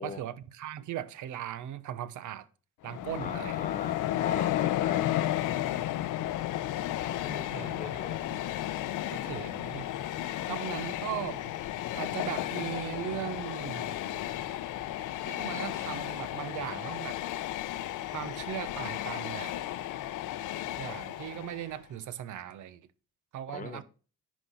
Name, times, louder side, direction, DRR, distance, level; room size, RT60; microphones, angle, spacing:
voice 1, 0.0-2.5 2.8-3.6 7.5-8.0 8.3-8.4 9.1-9.9 10.5-11.5 11.9-14.3 15.2-17.2 18.1-19.5 20.8-22.8 23.3-23.8, right 11 dB, 80° right, 0.9 m, -38 dB
Train, 2.8-21.8, left 13 dB, 85° left, 0.7 m, -33 dB
voice 2, 3.2-5.2 6.9-8.2 23.5-23.8, left 5 dB, 25° left, 1.2 m, -40 dB
10.5 x 4.4 x 5.6 m
cardioid pair, 90°, 30 cm